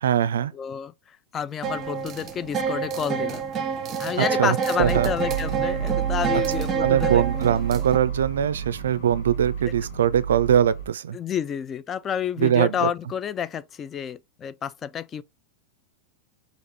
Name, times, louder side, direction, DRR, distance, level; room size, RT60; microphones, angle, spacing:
voice 1, 0.0-0.5 4.2-5.1 6.8-11.2 12.4-12.9, right 9 dB, 75° right, 0.4 m, -22 dB
voice 2, 0.5-3.4 4.0-7.2 11.1-15.2, left 8 dB, 25° left, 0.3 m, -30 dB
sound 1, 1.6-8.0, right 6 dB, 30° right, 0.7 m, -28 dB
sound 2, 4.8-10.9, right 7 dB, 60° left, 1.3 m, -30 dB
4.9 x 2.5 x 3.4 m
hypercardioid pair, 95°, 0 cm